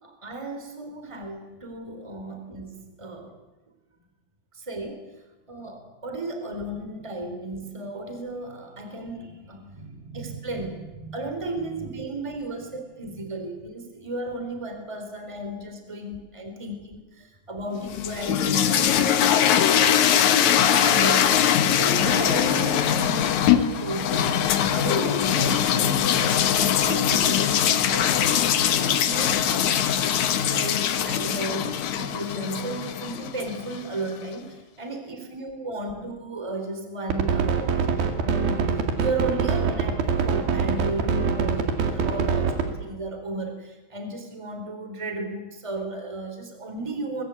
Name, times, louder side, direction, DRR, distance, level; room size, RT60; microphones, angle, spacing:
voice 1, 0.0-3.3 4.5-5.0 5.5-19.3 19.7-21.3 21.7-24.4 24.7-29.8 30.1-47.2, right 2 dB, 10° right, 5 dB, 3.6 m, -34 dB
sound 1, 17.8-33.9, left 9 dB, 65° left, 2.3 m, -22 dB
sound 2, 37.1-42.7, right 6 dB, 80° right, 4.1 m, -23 dB
24.0 x 21.5 x 8.5 m, 1.1 s
omnidirectional pair, 4.2 m